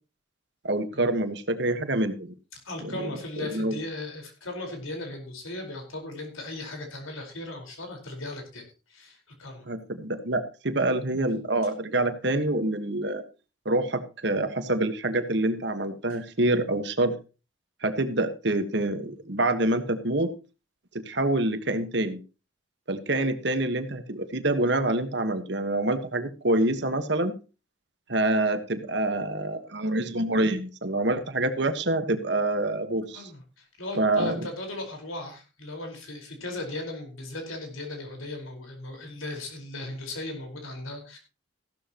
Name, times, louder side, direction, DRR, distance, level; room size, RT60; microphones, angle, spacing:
voice 1, 0.6-2.3 3.4-3.8 9.7-13.2 13.6-17.2 17.8-20.3 20.9-22.2 22.9-27.4 28.1-33.3 34.0-34.5, right 2 dB, 60° right, 9 dB, 1.5 m, -26 dB
voice 2, 2.5-9.7 33.1-41.2, left 2 dB, 90° left, 3 dB, 4.8 m, -37 dB
15.0 x 12.0 x 3.0 m, 0.32 s
head